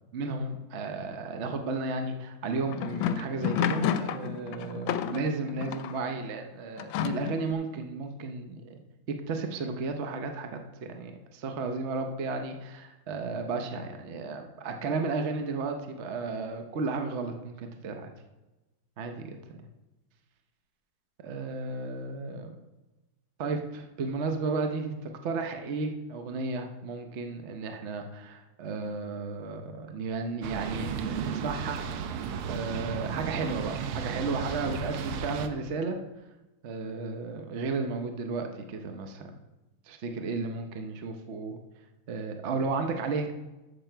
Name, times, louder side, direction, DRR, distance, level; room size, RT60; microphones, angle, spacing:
voice 1, 0.1-8.8 9.3-10.6 10.9-18.1 19.0-19.2 21.2-22.6 23.4-31.8 32.4-36.0 36.6-39.3 39.9-41.6 42.1-43.3, right 3 dB, 60° right, 5 dB, 0.7 m, -33 dB
sound 1, 2.4-6.0 6.8-7.5, left 9 dB, 75° left, 1.3 m, -31 dB
sound 2, 30.4-35.5, right 7 dB, 85° right, 1.6 m, -34 dB
13.5 x 6.0 x 4.5 m, 1.1 s
omnidirectional pair, 2.4 m